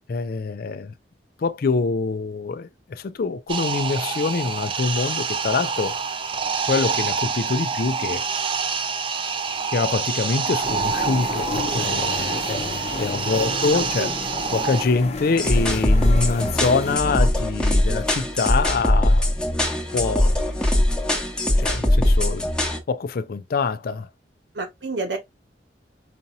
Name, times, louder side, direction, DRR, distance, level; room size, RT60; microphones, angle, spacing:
voice 1, 0.1-0.9 1.4-6.0 6.7-8.2 9.7-14.2 14.5-19.3 19.9-20.4 21.6-22.5 22.9-24.1, left 4 dB, 55° left, 0.4 m, -25 dB
sound 1, 3.5-14.8, right 6 dB, 30° right, 0.4 m, -26 dB
sound 2, 10.6-17.0, left 3 dB, 40° left, 0.8 m, -32 dB
voice 2, 13.2-13.6 14.0-14.1 24.5-25.2, right 3 dB, 80° right, 1.3 m, -30 dB
sound 3, 15.4-22.8, left 1 dB, 5° left, 0.9 m, -21 dB
5.0 x 2.8 x 2.6 m
head